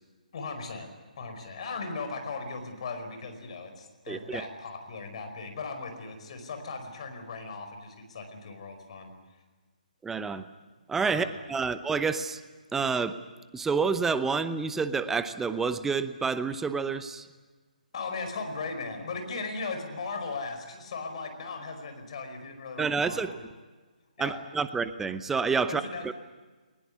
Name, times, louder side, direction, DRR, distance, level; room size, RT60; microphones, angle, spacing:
voice 1, 0.3-0.9 1.2-9.1 11.1-11.3 17.9-23.4 24.2-24.4 25.7-26.1, left 4 dB, 45° left, 6 dB, 5.1 m, -37 dB
voice 2, 4.1-4.4 10.0-10.5 10.9-12.4 12.7-13.2 13.5-17.3 22.8-23.4 24.2-26.1, right 5 dB, 5° right, 12 dB, 0.8 m, -29 dB
21.0 x 20.5 x 9.6 m, 1.3 s
figure-of-eight pair, 140°, 5 cm